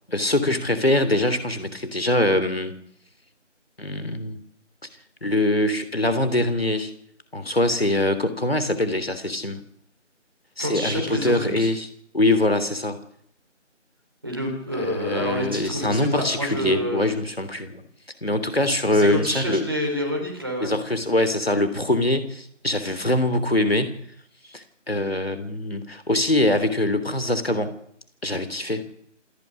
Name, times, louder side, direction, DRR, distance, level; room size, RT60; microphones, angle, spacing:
voice 1, 0.1-2.8 3.8-4.4 5.2-6.9 7.3-9.6 10.6-11.9 12.1-13.0 14.8-17.8 18.2-19.7 20.6-24.0 24.5-27.7 28.2-28.8, left 1 dB, 50° left, 10 dB, 3.2 m, -23 dB
voice 2, 10.6-11.7 14.2-17.0 18.9-20.7, equal, 20° right, 1 dB, 3.8 m, -28 dB
27.5 x 10.5 x 9.8 m, 0.70 s
figure-of-eight pair, 175°, 37 cm